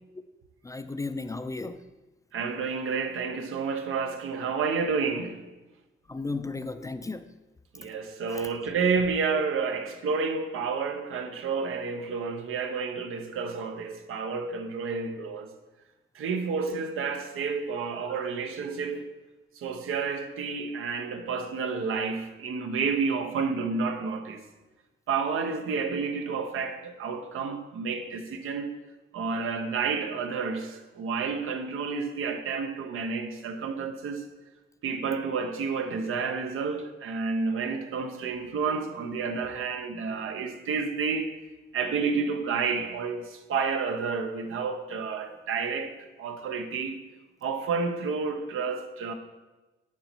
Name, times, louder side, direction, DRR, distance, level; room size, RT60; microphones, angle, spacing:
voice 1, 0.6-1.8 6.1-7.3 8.3-8.5 18.2-18.3, left 3 dB, 15° left, 0.3 m, -34 dB
voice 2, 2.3-5.4 7.7-15.5 16.1-19.1 19.6-24.4 25.1-28.7 29.1-34.2 34.8-41.3 41.7-47.0 47.4-49.1, right 5 dB, 90° right, 0.8 m, -30 dB
10.5 x 4.0 x 4.4 m
cardioid pair, 100°, 21 cm